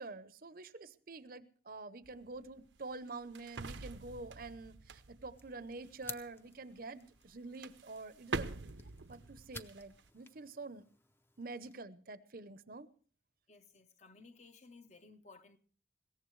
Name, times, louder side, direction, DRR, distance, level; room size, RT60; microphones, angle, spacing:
voice 1, 0.0-8.5 9.1-10.9 11.4-12.9, right 3 dB, 50° right, 0.7 m, -47 dB
sound 1, 2.0-6.3 7.2-7.3 7.6-10.1, right 3 dB, 80° right, 0.8 m, -45 dB
sound 2, 5.3-11.8, left 2 dB, 10° left, 0.6 m, -54 dB
voice 2, 13.5-15.6, left 3 dB, 40° left, 0.9 m, -58 dB
21.5 x 17.0 x 3.2 m
head